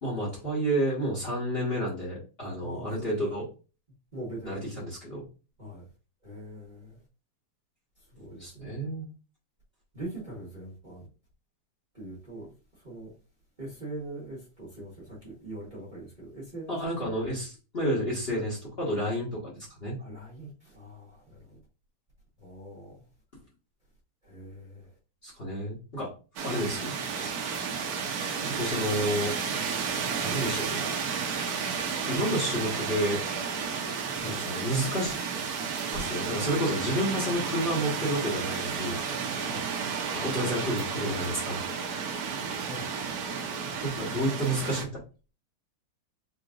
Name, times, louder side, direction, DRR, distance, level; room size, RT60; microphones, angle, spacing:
voice 1, 0.0-3.5 4.4-5.2 8.4-9.1 16.7-20.0 25.2-26.1 26.4-27.3 28.4-29.3 30.2-30.9 31.9-33.2 34.2-35.1 35.9-39.0 40.1-41.6 43.8-44.9, equal, 30° left, -5 dB, 1.4 m, -30 dB
voice 2, 2.6-3.1 4.1-4.6 5.6-5.8 6.2-6.9 8.1-8.4 9.9-11.1 11.9-12.5 12.8-13.1 13.6-16.8 18.3-18.4 20.0-21.6 22.4-23.0 24.3-24.8 34.2-34.4 39.4-39.6 42.7-42.8, right 1 dB, 25° right, -7 dB, 1.1 m, -42 dB
sound 1, 26.4-44.8, right 6 dB, 70° right, 0.9 m, -32 dB
4.5 x 3.0 x 2.4 m, 0.33 s
omnidirectional pair, 2.3 m